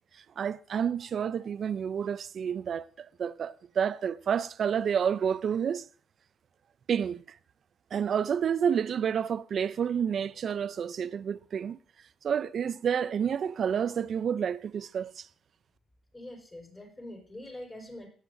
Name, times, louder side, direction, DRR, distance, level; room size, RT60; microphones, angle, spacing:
voice 1, 0.4-5.8 6.9-7.2 7.9-11.8 12.2-15.3, right 7 dB, 55° right, 0.4 m, -29 dB
voice 2, 16.1-18.1, left 1 dB, 25° left, 4.2 m, -44 dB
18.5 x 7.3 x 2.6 m
cardioid pair, 100°, 0 cm